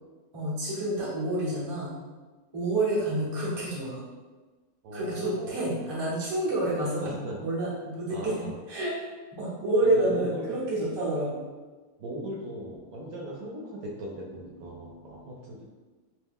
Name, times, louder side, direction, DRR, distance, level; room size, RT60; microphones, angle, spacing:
voice 1, 0.3-2.0 2.5-4.0 4.9-7.1 7.4-8.4 8.7-8.9 9.3-11.4, right 1 dB, 25° right, -7 dB, 0.5 m, -28 dB
voice 2, 4.8-5.7 7.0-7.4 8.1-8.5 9.8-10.6 12.0-15.6, equal, 70° right, -4 dB, 0.9 m, -38 dB
2.7 x 2.2 x 3.4 m, 1.3 s
omnidirectional pair, 1.7 m